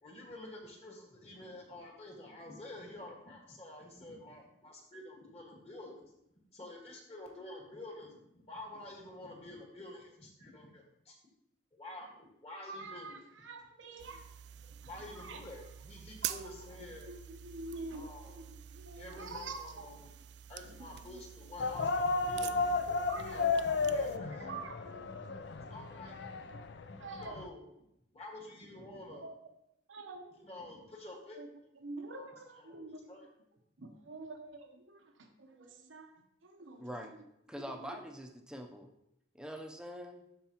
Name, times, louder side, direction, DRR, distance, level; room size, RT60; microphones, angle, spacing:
voice 1, 0.0-5.9 6.5-8.1 8.5-11.1 11.7-13.2 14.8-17.1 17.9-18.5 18.9-20.1 20.5-22.0 22.3-22.7 23.2-24.5 24.9-25.0 25.7-26.2 27.2-27.7 28.1-29.3 30.4-31.4 32.0-32.8 33.1-33.3, left 1 dB, 35° left, -1 dB, 1.6 m, -49 dB
voice 2, 12.7-14.3 15.2-15.4 16.2-16.3 16.8-18.5 18.7-19.8 23.1-24.1 24.4-25.2 27.0-27.4 29.1-29.4 29.9-30.3 31.3-31.5 31.8-33.1 33.8-36.9 37.8-38.0, right 3 dB, 85° right, 4 dB, 0.8 m, -46 dB
sound 1, 14.0-24.2, right 11 dB, 60° right, 0.3 m, -47 dB
sound 2, 21.6-27.5, left 4 dB, 65° left, 0.5 m, -34 dB
voice 3, 36.8-37.1 37.5-38.9 39.3-40.2, equal, 5° right, 3 dB, 0.6 m, -44 dB
12.5 x 4.6 x 3.0 m, 0.82 s
head